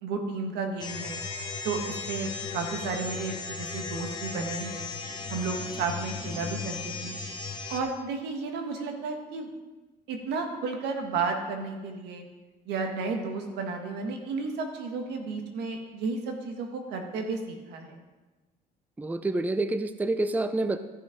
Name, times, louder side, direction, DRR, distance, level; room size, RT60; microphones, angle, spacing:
voice 1, 0.0-1.2 1.6-4.9 5.3-7.2 7.7-9.5 10.1-12.2 12.6-18.0, right 4 dB, 85° right, 4 dB, 1.6 m, -33 dB
sound 1, 0.8-7.8, left 4 dB, 25° left, 1.4 m, -36 dB
voice 2, 19.0-20.8, right 2 dB, 10° right, 11 dB, 0.5 m, -28 dB
13.5 x 6.1 x 5.2 m, 1.2 s
cardioid pair, 110°, 17 cm